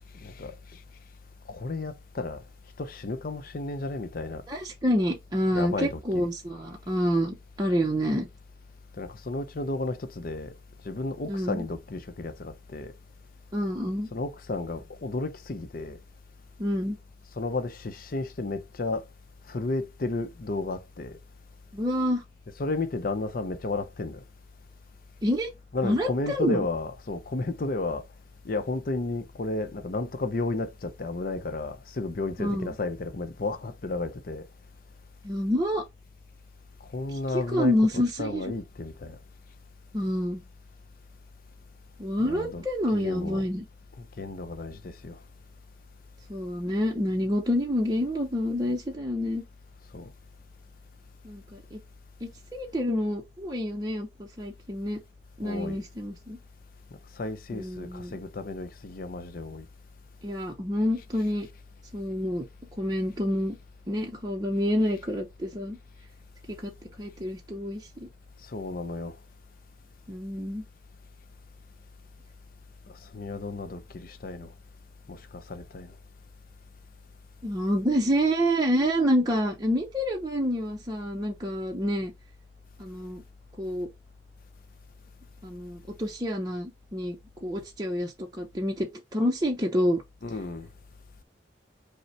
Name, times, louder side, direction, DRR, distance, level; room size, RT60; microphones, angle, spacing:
voice 1, 0.1-0.8 1.5-2.4 2.8-4.4 5.5-6.3 9.0-10.5 10.8-12.9 14.1-16.0 17.3-19.1 19.5-21.2 22.6-24.2 25.7-28.1 28.4-34.5 36.8-39.2 42.2-42.6 42.9-43.4 44.0-45.2 49.9-50.1 55.4-55.8 57.1-59.7 68.4-69.2 72.9-74.5 75.1-76.0 90.2-90.7, left 2 dB, 50° left, 0.6 m, -33 dB
voice 2, 4.5-8.3 11.3-11.6 13.5-14.1 16.6-17.0 21.7-22.2 25.2-25.5 25.8-26.6 32.4-32.7 35.2-35.8 37.1-38.5 39.9-40.4 42.0-43.6 46.3-49.4 51.2-51.8 52.2-55.0 55.4-56.4 57.5-58.1 60.2-61.5 61.9-62.5 62.8-63.6 63.9-65.8 66.5-66.7 67.0-68.1 70.1-70.6 77.4-82.1 82.8-83.2 83.6-83.9 85.4-90.0, equal, 20° right, 0.6 m, -28 dB
5.4 x 2.1 x 4.3 m
head